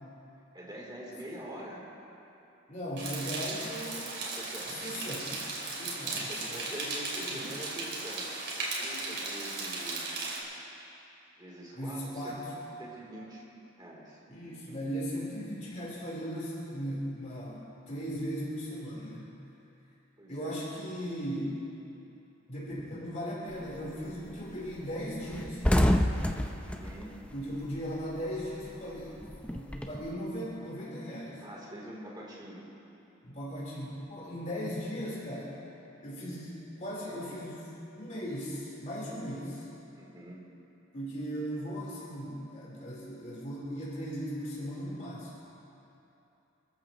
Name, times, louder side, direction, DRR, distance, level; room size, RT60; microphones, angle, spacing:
voice 1, 0.5-1.9 4.2-4.7 6.0-8.3 8.8-10.4 11.4-12.4 12.8-13.4 13.8-14.2 14.7-14.8 20.2-20.6 26.6-27.1 31.4-32.7 39.9-40.4, right 1 dB, 20° right, -4 dB, 3.3 m, -45 dB
voice 2, 2.7-4.2 4.7-6.6 7.1-7.5 11.8-12.4 14.3-19.4 20.3-21.6 22.5-25.9 27.3-29.1 29.5-31.4 33.2-35.6 36.0-37.6 37.9-39.7 40.9-45.4, equal, 40° left, -8 dB, 3.8 m, -38 dB
sound 1, 3.0-10.4, right 3 dB, 55° right, 3.2 m, -36 dB
sound 2, 23.5-23.9 24.3-24.4 24.7-24.8 25.1-28.1 28.4-30.1, equal, 5° left, 0.6 m, -28 dB
28.5 x 14.0 x 3.0 m, 2.9 s
head